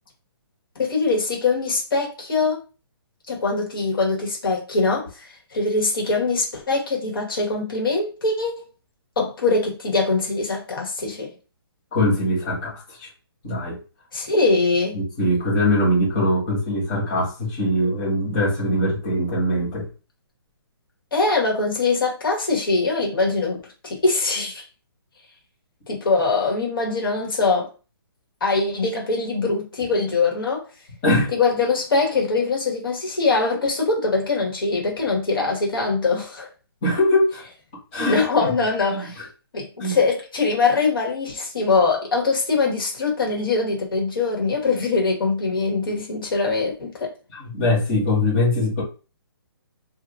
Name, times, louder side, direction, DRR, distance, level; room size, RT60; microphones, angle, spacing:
voice 1, 0.8-2.6 3.3-5.3 5.5-8.5 9.2-11.3 14.1-15.0 21.1-23.6 23.8-24.6 25.9-27.7 28.4-30.6 31.3-36.5 38.0-39.2 39.5-47.1, left 3 dB, 60° left, 1.6 m, -22 dB
voice 2, 11.9-13.1 13.4-13.8 14.9-19.9 31.0-31.3 36.8-37.4 37.9-38.5 38.9-39.0 39.8-40.0 47.3-48.8, left 1 dB, 20° left, 1.4 m, -22 dB
2.6 x 2.5 x 3.6 m
hypercardioid pair, 175°, 13 cm